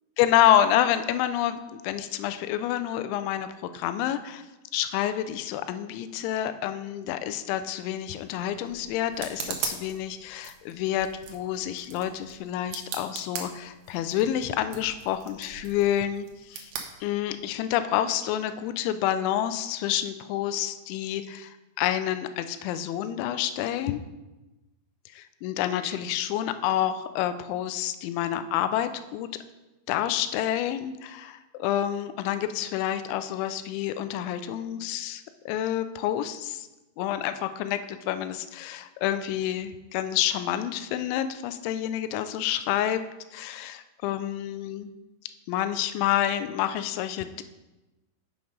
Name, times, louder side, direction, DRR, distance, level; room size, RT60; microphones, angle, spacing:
voice 1, 0.2-4.4 4.7-16.7 17.0-24.0 25.1-29.3 29.9-36.7 37.0-43.0 43.3-44.9 45.5-47.4, left 11 dB, 85° left, 11 dB, 2.9 m, -28 dB
sound 1, 7.8-17.7, right 7 dB, 90° right, 2.0 m, -41 dB
7.8 x 5.2 x 5.2 m, 1.1 s
omnidirectional pair, 5.3 m